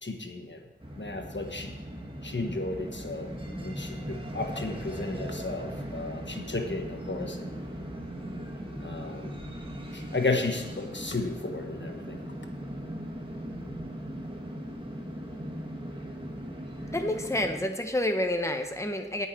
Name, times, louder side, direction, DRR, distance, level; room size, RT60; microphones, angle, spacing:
voice 1, 0.0-0.6 1.0-1.7 2.2-3.3 3.6-7.6 8.8-9.4 9.9-12.2, left 3 dB, 65° left, 4 dB, 1.3 m, -33 dB
sound 1, 0.8-17.7, equal, 25° right, 1.8 m, -38 dB
voice 2, 16.9-19.3, left 1 dB, 15° left, 5 dB, 1.0 m, -29 dB
17.0 x 6.1 x 4.6 m, 1.2 s
wide cardioid pair, 40°, 20 cm